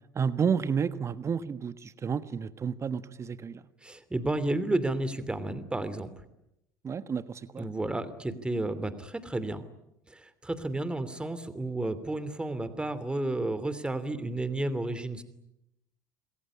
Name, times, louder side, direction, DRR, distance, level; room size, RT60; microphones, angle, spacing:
voice 1, 0.1-3.6 6.8-7.7, right 6 dB, 30° right, 13 dB, 1.5 m, -31 dB
voice 2, 3.8-6.1 7.6-9.6 10.1-15.2, right 2 dB, 10° right, 13 dB, 2.9 m, -32 dB
27.5 x 21.5 x 9.9 m, 0.86 s
figure-of-eight pair, 65°, 10 cm